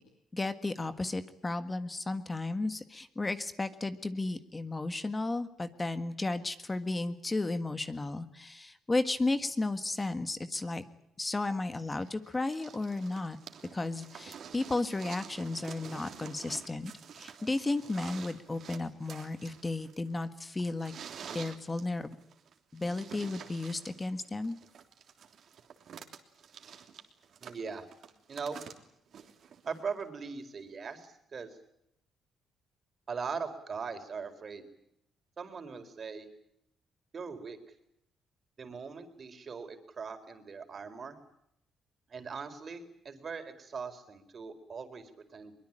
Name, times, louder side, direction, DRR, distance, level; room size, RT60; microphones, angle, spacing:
voice 1, 0.3-10.8 11.2-13.4 13.7-20.9 21.3-22.1 22.7-24.6, left 2 dB, 20° left, 10 dB, 1.6 m, -34 dB
sound 1, 11.9-30.0 31.0-31.1, right 7 dB, 60° right, 3.2 m, -49 dB
voice 2, 27.4-27.9 28.3-28.6 29.7-31.5 33.1-34.6 35.4-36.3 37.1-37.6 38.6-41.2 42.1-45.5, right 5 dB, 45° right, 8 dB, 4.2 m, -40 dB
23.0 x 22.0 x 8.8 m, 0.77 s
cardioid pair, 90°, 0 cm